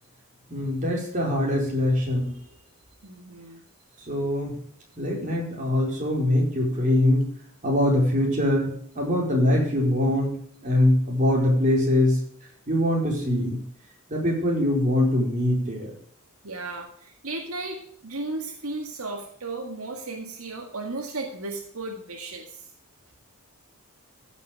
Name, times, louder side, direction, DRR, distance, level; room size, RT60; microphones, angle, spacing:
voice 1, 0.5-2.3 4.1-4.6 5.0-7.3 7.6-10.4 10.6-12.2 12.7-13.6 14.1-15.9, left 1 dB, 35° right, -2 dB, 4.5 m, -23 dB
voice 2, 3.0-3.6 16.4-22.7, right 2 dB, 80° right, 2 dB, 1.9 m, -35 dB
15.0 x 6.7 x 5.2 m, 0.62 s
head